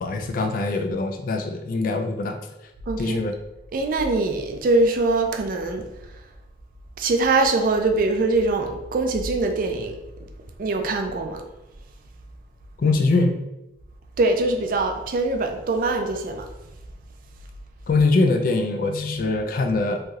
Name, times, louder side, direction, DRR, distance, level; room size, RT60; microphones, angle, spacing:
voice 1, 0.0-2.4 3.0-3.3 12.8-13.4 17.9-20.0, left 3 dB, 50° left, 5 dB, 0.3 m, -22 dB
voice 2, 2.9-3.2 3.7-5.9 7.0-10.0 10.6-11.4 14.2-16.5, right 2 dB, 50° right, 4 dB, 0.3 m, -23 dB
3.2 x 2.6 x 2.3 m, 0.93 s
head